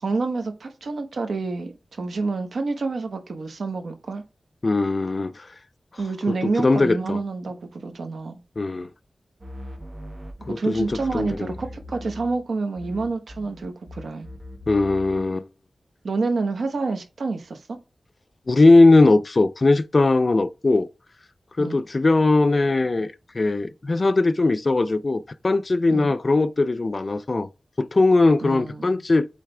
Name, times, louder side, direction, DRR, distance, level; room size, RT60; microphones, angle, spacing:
voice 1, 0.0-4.2 6.0-8.4 10.5-14.3 16.0-17.8 21.6-21.8 25.9-26.1 28.4-29.0, right 3 dB, 80° right, 1.1 m, -28 dB
voice 2, 4.6-5.5 6.6-7.2 8.6-8.9 10.5-10.9 11.1-11.5 14.7-15.5 18.5-20.9 21.6-27.5 27.8-29.3, left 2 dB, 40° left, 0.4 m, -19 dB
sound 1, 9.4-12.5 12.7-15.3, equal, 40° right, 1.4 m, -39 dB
8.4 x 3.3 x 3.4 m
wide cardioid pair, 115°, 0 cm